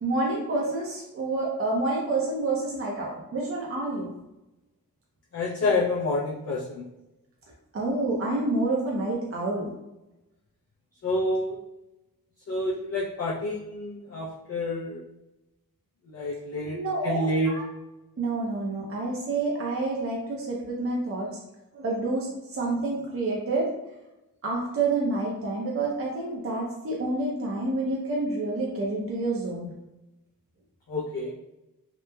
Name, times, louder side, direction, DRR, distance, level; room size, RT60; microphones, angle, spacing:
voice 1, 0.0-4.1 7.7-9.7 16.6-17.6 18.2-21.4 21.7-23.7 24.4-29.7, right 2 dB, 40° right, -3 dB, 0.5 m, -28 dB
voice 2, 5.3-6.8 11.0-11.6 12.5-15.0 16.1-17.5 30.9-31.3, left 2 dB, 45° left, -6 dB, 0.5 m, -28 dB
3.0 x 2.1 x 2.2 m, 0.95 s
wide cardioid pair, 80°, 36 cm